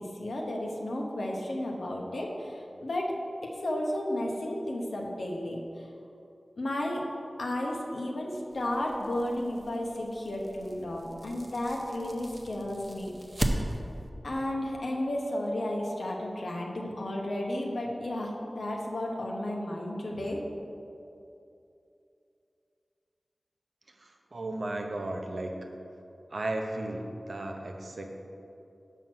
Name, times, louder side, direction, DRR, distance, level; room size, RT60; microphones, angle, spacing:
voice 1, 0.0-3.1 3.4-5.6 6.6-7.0 7.4-13.1 14.2-20.4, left 1 dB, 80° left, -1 dB, 0.8 m, -33 dB
sound 1, 8.5-14.1, right 1 dB, 25° right, 0.6 m, -37 dB
voice 2, 24.0-25.5 26.3-28.1, right 2 dB, 70° right, 2 dB, 0.7 m, -35 dB
5.8 x 4.5 x 6.0 m, 2.7 s
cardioid pair, 40°, 0 cm